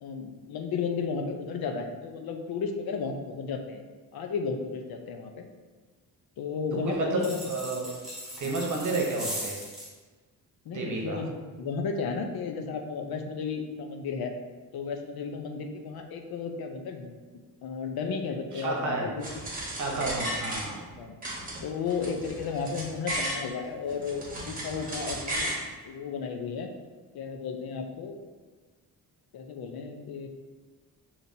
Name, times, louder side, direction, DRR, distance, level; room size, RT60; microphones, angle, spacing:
voice 1, 0.0-3.8 4.1-5.5 6.4-7.4 8.4-8.6 10.7-14.3 14.7-17.2 17.6-19.3 19.9-20.1 21.0-21.1 21.6-25.5 25.8-26.7 27.1-28.2 29.3-30.3, left 5 dB, 75° left, 4 dB, 0.6 m, -33 dB
voice 2, 6.8-7.9 8.4-9.6 10.7-11.2 18.5-19.1 19.8-20.7, right 3 dB, 50° right, -1 dB, 0.9 m, -31 dB
sound 1, 7.2-9.9, equal, ahead, 1.4 m, -38 dB
sound 2, 19.2-20.9 21.2-23.4 23.9-25.6, right 1 dB, 20° right, 1.1 m, -34 dB
6.6 x 2.9 x 2.7 m, 1.4 s
wide cardioid pair, 145°, 38 cm